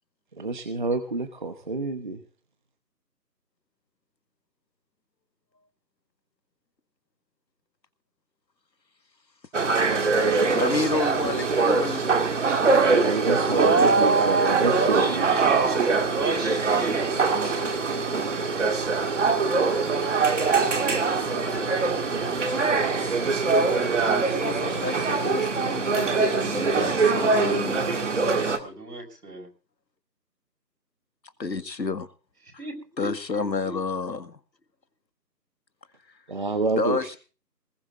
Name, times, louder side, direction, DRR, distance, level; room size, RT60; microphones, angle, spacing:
voice 1, 0.4-2.2 12.8-15.3 36.3-37.2, right 3 dB, 30° right, 8 dB, 1.0 m, -28 dB
sound 1, 9.5-28.6, right 4 dB, 45° right, 2.1 m, -23 dB
voice 2, 10.5-13.7 24.1-27.8 31.4-32.1 33.0-34.4 36.8-37.2, left 4 dB, 85° left, 10 dB, 1.9 m, -31 dB
voice 3, 13.5-17.2 20.6-21.7 28.6-29.5 32.6-33.7, right 3 dB, 65° right, 2 dB, 6.7 m, -28 dB
21.5 x 20.0 x 2.6 m, 0.35 s
figure-of-eight pair, 160°, 50 cm